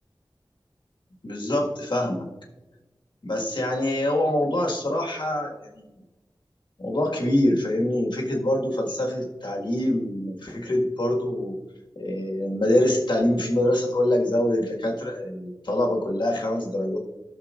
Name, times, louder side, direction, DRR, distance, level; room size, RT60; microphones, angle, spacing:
voice 1, 1.2-2.3 3.2-5.8 6.8-11.6 11.9-17.0, left 1 dB, 65° left, -1 dB, 1.7 m, -25 dB
13.0 x 6.4 x 2.5 m, 1.1 s
wide cardioid pair, 65°, 9 cm